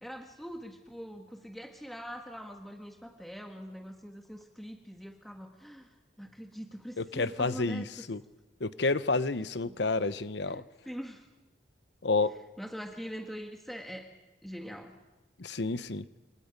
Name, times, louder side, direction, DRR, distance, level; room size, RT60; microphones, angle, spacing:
voice 1, 0.0-5.9 6.2-8.0 9.7-9.8 10.5-11.3 12.6-14.0 14.4-15.0, equal, ahead, 3 dB, 1.4 m, -43 dB
voice 2, 7.0-8.2 8.6-10.6 12.0-12.3 15.4-16.0, left 3 dB, 70° left, 14 dB, 0.9 m, -30 dB
28.5 x 25.5 x 5.3 m, 1.1 s
head